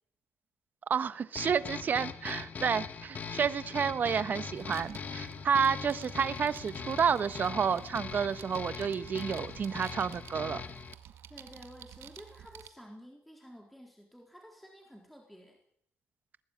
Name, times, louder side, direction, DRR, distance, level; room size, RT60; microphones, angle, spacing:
voice 1, 0.9-10.6, right 7 dB, 45° right, 13 dB, 1.3 m, -30 dB
sound 1, 1.4-11.0, left 6 dB, 40° left, 1.6 m, -41 dB
sound 2, 4.5-12.7, right 10 dB, 75° right, 2.0 m, -52 dB
voice 2, 11.3-15.6, equal, ahead, 1 dB, 4.0 m, -52 dB
21.5 x 20.0 x 9.0 m, 0.67 s
cardioid pair, 130°, 4 cm